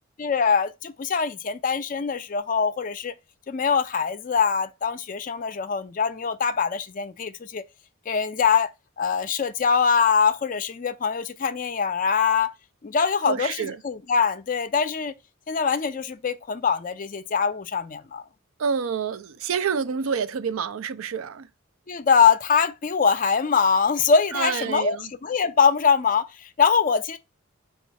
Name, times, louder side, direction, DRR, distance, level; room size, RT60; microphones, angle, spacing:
voice 1, 0.2-3.1 3.5-7.6 8.1-8.7 9.0-12.5 12.8-15.1 15.5-18.2 21.9-25.0 25.2-27.2, left 6 dB, 40° left, 0.4 m, -23 dB
voice 2, 13.2-13.8 18.6-21.5 24.3-25.1, right 6 dB, 75° right, 0.4 m, -28 dB
5.3 x 2.4 x 3.9 m
head